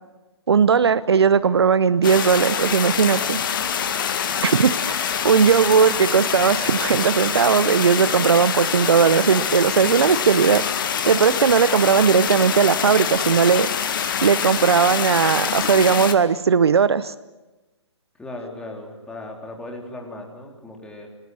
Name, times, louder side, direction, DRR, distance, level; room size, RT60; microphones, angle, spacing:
voice 1, 0.5-3.4 4.4-10.7 11.1-13.7 14.2-17.1, right 6 dB, 60° right, 17 dB, 0.8 m, -18 dB
sound 1, 2.0-16.1, left 8 dB, 45° left, 2.0 m, -25 dB
voice 2, 18.2-21.1, left 2 dB, 5° left, 0 dB, 3.8 m, -37 dB
27.5 x 20.0 x 7.9 m, 1.1 s
figure-of-eight pair, 135°, 16 cm